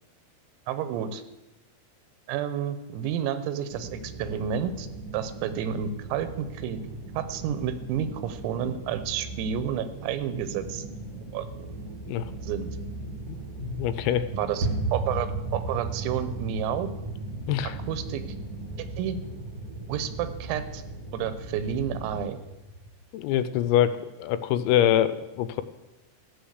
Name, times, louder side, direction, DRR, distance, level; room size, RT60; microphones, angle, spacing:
voice 1, 0.7-1.2 2.3-4.9 5.1-6.8 7.2-10.9 11.3-11.7 12.4-12.7 14.3-16.9 17.9-18.2 18.8-19.2 19.9-20.8 21.1-22.4, right 9 dB, 85° right, 11 dB, 3.6 m, -30 dB
sound 1, 3.7-22.2, right 2 dB, 65° right, 2.2 m, -39 dB
voice 2, 13.3-14.3 17.5-17.8 23.1-25.6, left 11 dB, 85° left, 13 dB, 3.4 m, -25 dB
sound 2, 14.6-22.9, right 2 dB, 45° right, 1.2 m, -36 dB
15.0 x 6.7 x 8.1 m, 1.0 s
omnidirectional pair, 6.0 m